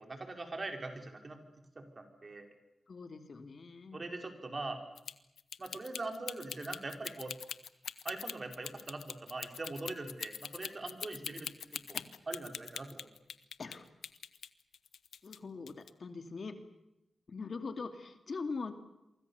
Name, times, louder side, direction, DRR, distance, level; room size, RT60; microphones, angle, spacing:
voice 1, 0.0-1.4 1.7-2.5 3.9-4.8 5.6-7.3 8.0-11.5 11.9-12.0 12.3-13.1, right 2 dB, 45° right, 5 dB, 4.6 m, -42 dB
voice 2, 2.9-4.0 11.9-12.0 13.6-13.9 15.2-16.6 17.3-18.7, left 4 dB, 60° left, 7 dB, 2.5 m, -42 dB
sound 1, 5.0-13.8 14.0-15.4 15.7-15.9, left 8 dB, 90° left, 0.8 m, -42 dB
28.0 x 24.0 x 7.1 m, 0.90 s
cardioid pair, 55°, 0 cm